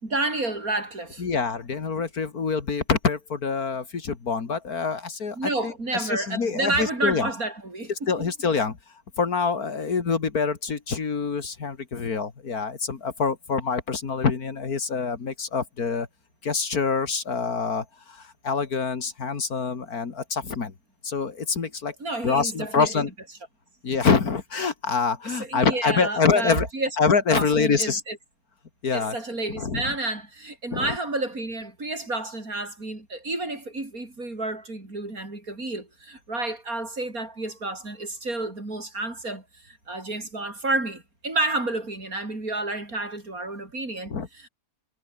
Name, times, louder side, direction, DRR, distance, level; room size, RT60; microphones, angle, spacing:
voice 1, 0.0-1.2 5.4-8.3 22.0-23.0 25.4-26.9 27.3-28.2 28.9-44.5, right 2 dB, 65° right, 6.4 m, -30 dB
voice 2, 1.2-7.3 8.1-8.8 9.2-16.1 16.4-20.7 21.0-21.9 22.2-23.1 23.8-26.7 27.0-28.0 28.8-29.2 29.5-29.9 30.7-30.9 44.1-44.3, left 5 dB, 75° left, 2.6 m, -25 dB
omnidirectional pair, 1.6 m